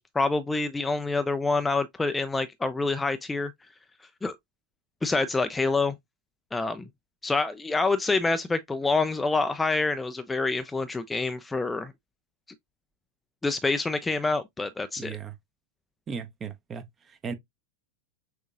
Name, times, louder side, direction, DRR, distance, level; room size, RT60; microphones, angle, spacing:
voice 1, 0.0-3.5 4.2-4.3 5.0-6.0 6.5-6.8 7.2-11.9 13.4-15.2, left 3 dB, 10° left, 0.3 m, -27 dB
voice 2, 15.0-15.3 16.1-17.3, right 6 dB, 20° right, 0.7 m, -37 dB
6.3 x 2.8 x 2.4 m
figure-of-eight pair, 90°, 0 cm